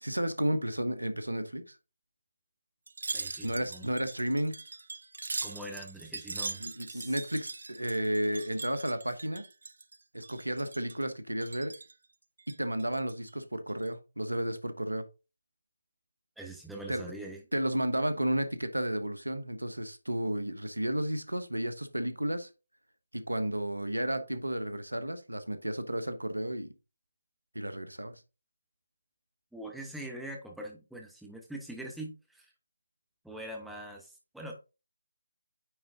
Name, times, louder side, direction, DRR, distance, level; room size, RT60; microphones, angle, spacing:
voice 1, 0.0-1.8 3.4-4.6 6.6-9.4 10.1-11.7 12.5-15.0 16.9-17.0 17.5-22.5 23.1-26.7 27.5-28.1, right 1 dB, 85° right, 1.1 m, -32 dB
Wind chime, 2.9-10.0 10.2-11.0 11.4-11.9 12.4-13.3 13.7-13.9, right 3 dB, 60° right, 0.5 m, -41 dB
voice 2, 3.1-3.9 5.4-7.2 16.4-17.4 29.5-32.5 33.2-34.6, right 1 dB, ahead, 1.1 m, -43 dB
9.3 x 3.9 x 3.7 m
figure-of-eight pair, 155°, 0 cm